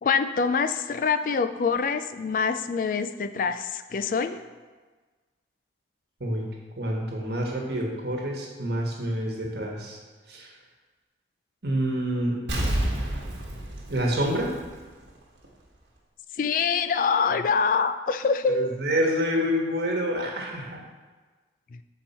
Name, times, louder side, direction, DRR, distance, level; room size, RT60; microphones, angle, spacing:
voice 1, 0.0-4.4 16.4-18.7 21.7-21.8, left 5 dB, 50° left, 10 dB, 0.3 m, -25 dB
voice 2, 6.8-10.0 10.3-10.5 11.6-12.4 13.9-14.5 18.5-20.8, equal, 65° right, -1 dB, 1.2 m, -27 dB
Explosion, 12.5-15.1 15.4-15.5, right 1 dB, 85° right, 1.3 m, -29 dB
7.1 x 4.5 x 4.2 m, 1.3 s
head